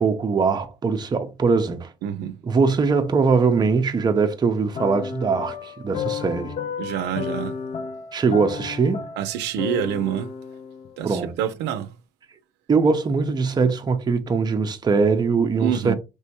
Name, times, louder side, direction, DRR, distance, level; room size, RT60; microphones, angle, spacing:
voice 1, 0.0-1.9 2.4-6.5 8.1-9.0 11.0-11.3 12.7-15.9, right 4 dB, 25° right, 0.6 m, -21 dB
voice 2, 2.0-2.3 6.8-7.5 9.2-10.3 11.0-11.9 15.6-15.9, right 10 dB, 85° right, 0.5 m, -26 dB
sound 1, 4.8-11.1, left 6 dB, 40° left, 0.5 m, -32 dB
3.3 x 3.0 x 2.9 m
cardioid pair, 110°, 17 cm